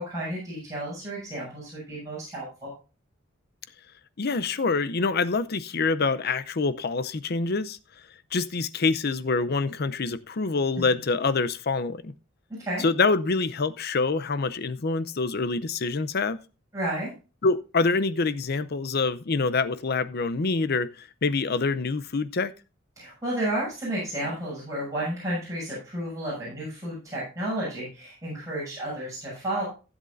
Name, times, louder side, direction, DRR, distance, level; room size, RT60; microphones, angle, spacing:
voice 1, 0.0-2.7 12.5-12.8 16.7-17.1 23.0-29.6, right 1 dB, 15° right, 7.0 m, -32 dB
voice 2, 4.2-7.8 8.3-12.1 12.8-16.4 17.4-22.5, left 4 dB, 50° left, 0.6 m, -26 dB
15.5 x 8.1 x 2.6 m
head